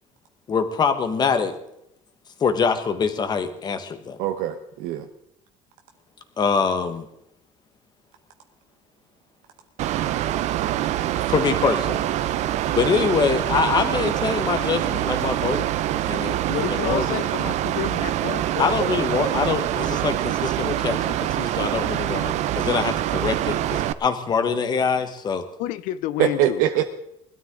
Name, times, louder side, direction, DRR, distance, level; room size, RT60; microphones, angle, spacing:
voice 1, 0.5-1.5 2.4-4.2 6.4-7.1 11.3-12.1 12.7-15.7 16.1-17.2 18.6-25.4, left 5 dB, 30° left, 8 dB, 1.5 m, -24 dB
voice 2, 4.2-5.1 26.2-26.9, right 11 dB, 85° right, 5 dB, 1.0 m, -22 dB
Mechanical fan, 9.8-23.9, right 13 dB, 55° right, 0.7 m, -25 dB
voice 3, 16.5-18.7 25.6-26.6, left 14 dB, 75° left, 14 dB, 0.7 m, -30 dB
21.0 x 12.5 x 3.8 m, 0.81 s
cardioid pair, 150°, 14 cm